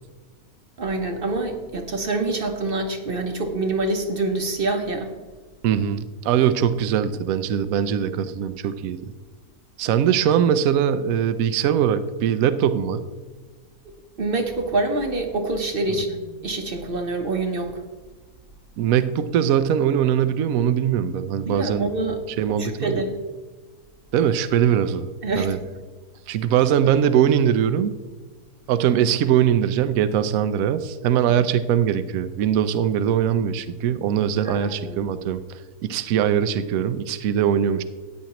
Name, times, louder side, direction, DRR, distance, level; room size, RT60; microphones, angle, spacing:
voice 1, 0.8-5.1 14.2-17.8 21.4-23.2 25.2-25.6 34.4-35.0, right 2 dB, 45° right, 5 dB, 0.9 m, -26 dB
voice 2, 5.6-9.1 9.8-13.0 18.8-21.9 22.4-23.0 24.1-25.1 25.4-25.6 26.3-27.9 28.7-35.4 35.8-37.8, right 9 dB, 70° right, 12 dB, 1.0 m, -21 dB
14.0 x 9.5 x 3.0 m, 1.3 s
omnidirectional pair, 1.6 m